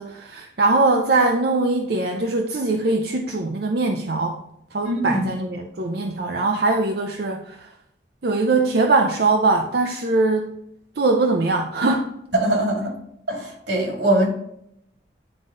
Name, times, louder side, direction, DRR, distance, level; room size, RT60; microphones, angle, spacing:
voice 1, 0.0-4.4 4.7-7.7 8.2-10.6 11.0-12.1, right 3 dB, 60° right, 3 dB, 0.6 m, -21 dB
voice 2, 4.8-5.4 12.3-12.9 13.3-14.3, right 1 dB, 80° right, -1 dB, 2.4 m, -22 dB
9.7 x 3.9 x 3.7 m, 0.76 s
head